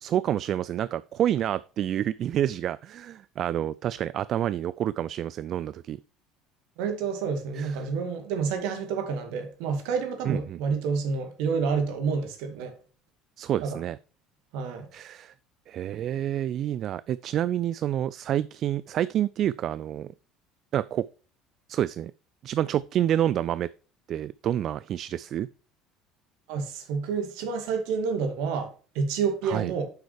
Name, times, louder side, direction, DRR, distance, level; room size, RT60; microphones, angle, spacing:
voice 1, 0.0-6.0 7.5-7.9 10.3-10.6 13.4-14.0 14.9-15.3 15.7-20.1 20.7-21.1 21.7-22.1 22.4-23.7 24.1-25.5 29.4-29.7, right 11 dB, 45° right, 0.3 m, -28 dB
voice 2, 6.8-12.7 13.6-13.8 14.5-14.9 26.5-29.9, right 5 dB, 60° right, 2.2 m, -29 dB
9.5 x 7.6 x 3.2 m
figure-of-eight pair, 60°, 0 cm